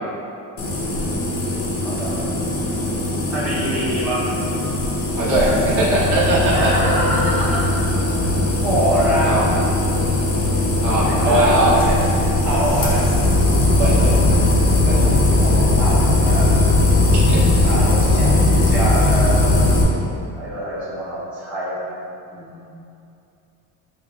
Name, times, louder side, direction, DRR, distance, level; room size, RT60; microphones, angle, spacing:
sound 1, 0.6-19.8, left 2 dB, 35° left, 0.7 m, -18 dB
voice 1, 1.8-2.3 3.3-4.3 6.5-7.8 8.6-9.4 11.1-12.0 12.4-13.1 15.4-16.7 17.6-19.8 20.3-22.0 22.3-22.7, right 1 dB, 5° right, -10 dB, 0.6 m, -25 dB
voice 2, 5.2-6.7 7.0-7.1 9.2-9.4 10.8-11.7 13.8-14.4 14.9-15.2 17.1-17.7, right 1 dB, 40° right, -6 dB, 1.0 m, -20 dB
6.2 x 3.1 x 2.3 m, 2.7 s
cardioid pair, 140°, 46 cm